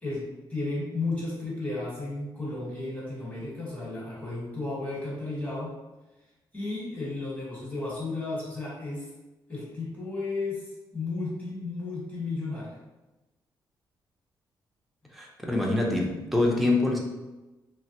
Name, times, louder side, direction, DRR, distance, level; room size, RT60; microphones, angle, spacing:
voice 1, 0.0-5.7 6.5-9.1 9.5-12.8, left 2 dB, 20° left, -6 dB, 1.1 m, -33 dB
voice 2, 15.1-17.0, left 2 dB, ahead, -2 dB, 0.5 m, -25 dB
3.1 x 2.0 x 2.8 m, 1.1 s
cardioid pair, 140°, 8 cm